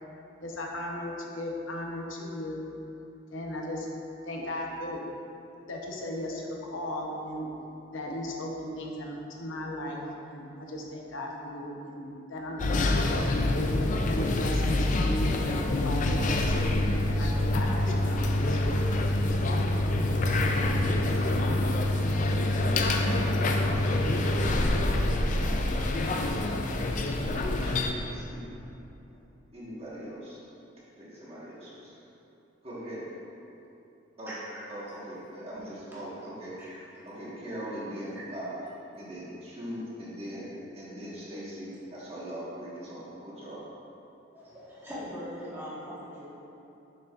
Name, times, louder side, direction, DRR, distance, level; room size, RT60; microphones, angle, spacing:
voice 1, 0.4-2.8 3.3-3.9 4.2-5.0 5.7-7.5 7.9-13.5 14.0-18.8, left 1 dB, 85° left, -1 dB, 0.8 m, -36 dB
sound 1, 12.6-27.9, left 1 dB, 40° left, 0.4 m, -26 dB
voice 2, 20.8-21.6 22.0-24.4 25.4-25.6 26.9-28.5 29.5-30.4 31.0-32.0 32.6-33.0 34.2-34.3 34.7-36.5 37.0-38.6 38.9-43.6, equal, 30° right, -8 dB, 1.4 m, -41 dB
voice 3, 31.5-31.8 34.3-34.4 36.1-36.3 36.6-37.1 38.0-38.2 44.3-46.3, equal, 10° right, -10 dB, 1.5 m, -42 dB
6.5 x 6.4 x 2.4 m, 2.9 s
head